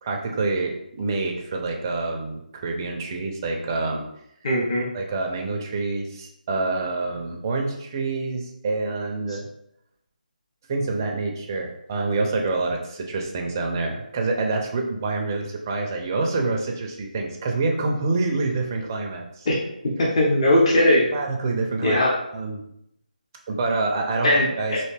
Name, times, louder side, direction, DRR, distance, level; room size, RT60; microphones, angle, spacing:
voice 1, 0.0-4.1 4.9-9.5 10.7-19.5 21.1-22.0 22.3-22.6 23.5-24.3 24.6-24.8, right 3 dB, 20° right, 1 dB, 0.4 m, -27 dB
voice 2, 4.4-4.9 19.5-19.6 20.0-21.0 21.8-22.1 24.2-24.9, left 1 dB, 40° left, -4 dB, 0.8 m, -19 dB
3.2 x 2.6 x 3.3 m, 0.78 s
figure-of-eight pair, 170°, 5 cm